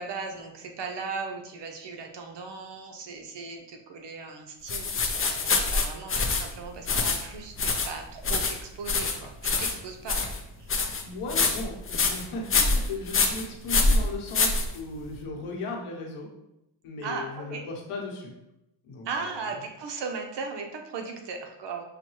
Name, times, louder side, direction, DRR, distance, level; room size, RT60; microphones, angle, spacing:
voice 1, 0.0-10.7 17.0-17.6 19.0-21.8, right 4 dB, 55° right, 3 dB, 0.8 m, -37 dB
sound 1, 4.7-15.2, left 3 dB, 30° left, 0.5 m, -26 dB
voice 2, 11.0-16.3 16.8-18.3 18.8-19.5, left 2 dB, 80° left, 0 dB, 1.1 m, -37 dB
5.8 x 2.2 x 3.0 m, 0.87 s
cardioid pair, 100°, 50 cm